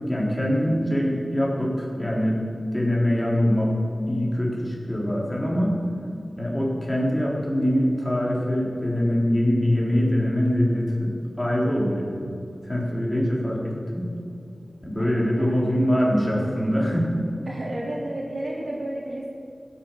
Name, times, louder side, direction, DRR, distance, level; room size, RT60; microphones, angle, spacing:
voice 1, 0.1-2.4 2.7-3.8 4.1-5.8 6.4-11.1 11.4-12.1 12.6-14.1 14.8-17.1, equal, 15° left, -4 dB, 4.0 m, -23 dB
voice 2, 15.0-16.5 17.5-19.4, right 1 dB, 60° right, -4 dB, 3.9 m, -33 dB
15.5 x 9.2 x 7.7 m, 2.6 s
wide cardioid pair, 55°, 0 cm